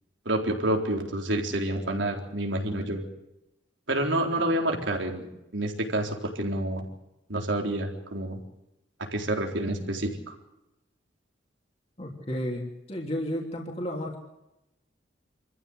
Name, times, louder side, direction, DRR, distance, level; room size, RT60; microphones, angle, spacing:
voice 1, 0.3-3.0 3.9-5.3 5.5-6.9 7.3-8.4 9.0-10.4, right 1 dB, 85° right, 2 dB, 4.0 m, -28 dB
voice 2, 12.0-14.2, equal, 35° left, 0 dB, 3.2 m, -32 dB
27.0 x 14.5 x 8.1 m, 0.90 s
head